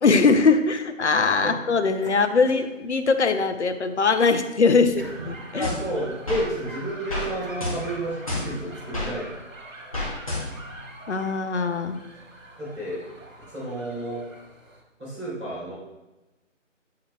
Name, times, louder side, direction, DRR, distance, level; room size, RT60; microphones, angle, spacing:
voice 1, 0.0-5.7 11.1-12.0, left 4 dB, 60° left, 8 dB, 0.6 m, -21 dB
sound 1, 2.0-3.5 3.9-8.5, right 2 dB, 45° right, 0.8 m, -45 dB
sound 2, 5.0-14.8, right 2 dB, 90° right, 1.7 m, -44 dB
voice 2, 5.5-9.3 12.6-13.0 13.5-14.2 15.0-15.7, right 1 dB, 10° right, -20 dB, 1.9 m, -31 dB
sound 3, 5.6-6.5 7.1-7.3 7.6-9.1 9.9-10.7, left 2 dB, 25° left, 1.0 m, -30 dB
8.6 x 5.6 x 2.3 m, 1.1 s
figure-of-eight pair, 170°, 38 cm